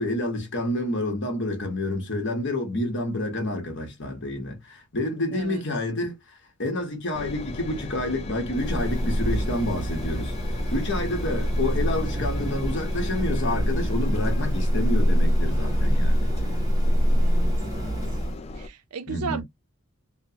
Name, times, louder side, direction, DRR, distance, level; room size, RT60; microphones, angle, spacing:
voice 1, 0.0-6.1 6.6-10.3 10.7-16.3 19.1-19.4, left 1 dB, 55° left, 1.0 m, -28 dB
voice 2, 5.3-5.6 17.1-18.0 18.6-19.4, right 5 dB, 90° right, 0.5 m, -36 dB
Engine, 7.1-18.7, left 2 dB, 30° left, 0.3 m, -37 dB
sound 1, 8.5-18.4, equal, 15° right, 0.6 m, -24 dB
2.9 x 2.1 x 2.7 m
head